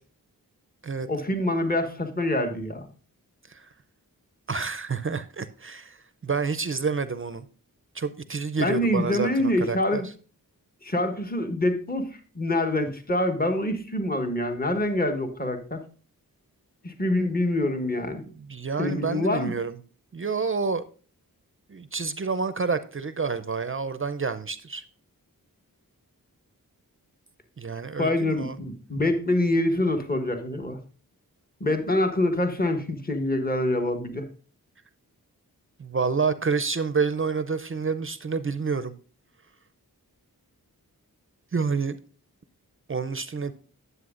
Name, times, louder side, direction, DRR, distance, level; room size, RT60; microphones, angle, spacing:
voice 1, 1.1-2.8 8.6-10.1 10.8-15.8 16.8-18.2 18.8-19.5 28.0-30.8 31.6-34.2, left 1 dB, 25° left, 1.4 m, -25 dB
voice 2, 4.5-6.0 6.2-7.4 7.9-10.0 18.5-19.8 20.1-20.8 21.7-24.8 27.6-28.6 35.8-38.9 41.5-42.0 42.9-43.5, right 5 dB, 35° right, 0.5 m, -28 dB
9.4 x 7.9 x 2.5 m
cardioid pair, 40°, 36 cm